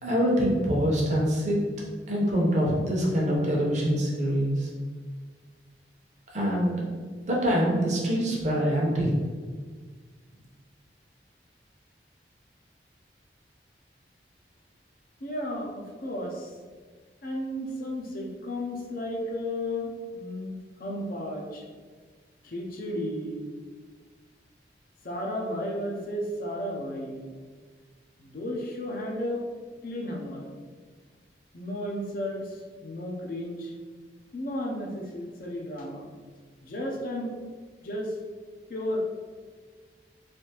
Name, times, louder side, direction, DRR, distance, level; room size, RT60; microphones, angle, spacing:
voice 1, 0.0-1.6 2.1-4.7 6.3-6.9 7.3-9.2, equal, 40° right, -3 dB, 0.7 m, -25 dB
voice 2, 15.2-16.5 17.2-21.6 22.4-23.4 25.0-27.3 28.2-29.4 29.8-30.5 31.5-33.7 34.3-36.1 36.6-37.3 37.8-38.2 38.7-39.0, left 1 dB, 50° left, -1 dB, 0.5 m, -33 dB
3.4 x 2.6 x 2.9 m, 1.5 s
head